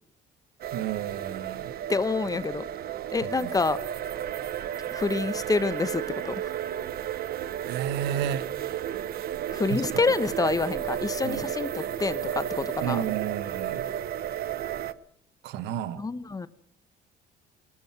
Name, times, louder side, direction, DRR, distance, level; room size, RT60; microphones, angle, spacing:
sound 1, 0.6-14.9, right 10 dB, 65° right, 1.0 m, -33 dB
voice 1, 0.7-1.7 3.4-3.5 7.6-8.5 9.7-9.8 11.2-11.4 12.8-13.9 15.4-16.0, right 10 dB, 85° right, 1.3 m, -31 dB
voice 2, 1.9-2.7 3.1-3.8 4.9-6.5 9.5-13.0 16.0-16.5, left 4 dB, 20° left, 1.0 m, -27 dB
22.5 x 19.5 x 5.9 m
cardioid pair, 110°, 17 cm